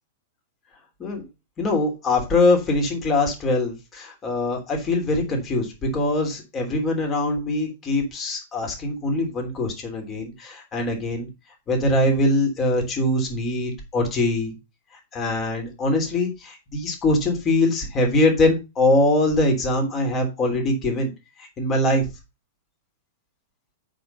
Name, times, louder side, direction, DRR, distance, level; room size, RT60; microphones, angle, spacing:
voice 1, 1.6-11.3 11.7-14.5 15.1-21.1 21.4-22.1, left 2 dB, 25° left, 1 dB, 3.1 m, -22 dB
8.6 x 5.3 x 5.3 m, 0.26 s
figure-of-eight pair, 100°, 0 cm